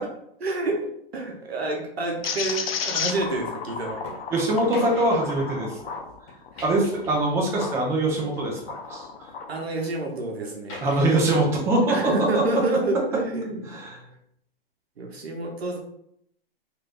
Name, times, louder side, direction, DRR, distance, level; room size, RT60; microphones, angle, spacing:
voice 1, 0.4-4.0 6.5-6.6 9.5-10.8 11.9-14.2 15.0-15.8, right 2 dB, 90° right, 1 dB, 0.7 m, -29 dB
sound 1, 2.2-7.8 8.3-9.5, left 5 dB, 70° left, 0.6 m, -33 dB
sound 2, 4.0-4.2 4.6-6.0 6.3-7.6 8.0-9.1 9.5-10.0 10.7-11.3, left 1 dB, 35° left, 1.1 m, -44 dB
voice 2, 4.3-5.9 6.6-8.6 8.9-9.3 10.8-12.6 13.7-14.0, right 2 dB, 10° right, -1 dB, 0.3 m, -23 dB
3.2 x 2.4 x 2.4 m, 0.72 s
hypercardioid pair, 125°, 31 cm